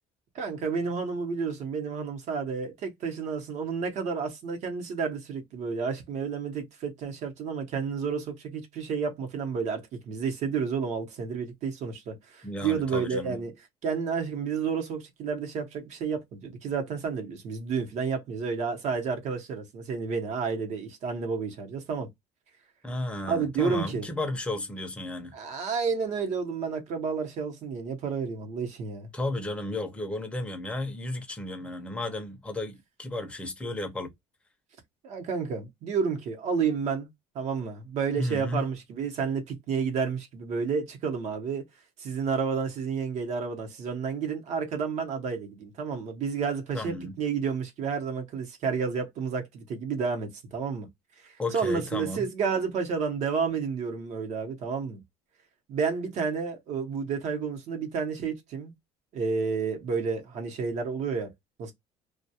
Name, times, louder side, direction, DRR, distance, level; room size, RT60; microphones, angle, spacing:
voice 1, 0.3-13.5 13.8-22.1 23.3-24.1 25.3-29.1 35.0-37.1 37.3-41.7 42.0-50.9 51.2-55.0 55.7-58.7 59.1-61.3 61.6-61.7, right 5 dB, 55° right, 0.9 m, -30 dB
voice 2, 12.4-13.4 22.8-25.3 29.1-34.1 38.2-38.6 46.7-47.2 51.4-52.3, left 2 dB, 10° left, 0.6 m, -33 dB
2.3 x 2.2 x 2.7 m
cardioid pair, 125°, 14 cm